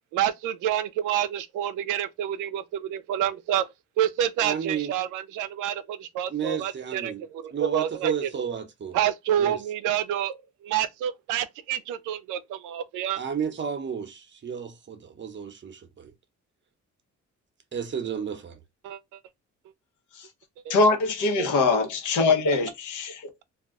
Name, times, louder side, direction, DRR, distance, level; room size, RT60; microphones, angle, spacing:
voice 1, 0.1-3.6 4.0-7.1 7.4-8.1 8.9-10.4 10.6-13.2 18.8-19.0 20.7-20.8 22.5-22.6, right 10 dB, 85° right, 0.5 m, -28 dB
voice 2, 4.4-4.9 6.3-7.2 7.5-9.0 9.4-9.6 13.2-16.1 17.7-18.6, right 7 dB, 40° right, 0.7 m, -32 dB
voice 3, 20.7-23.3, left 3 dB, 80° left, 0.9 m, -23 dB
2.4 x 2.2 x 3.5 m
cardioid pair, 90°, 30 cm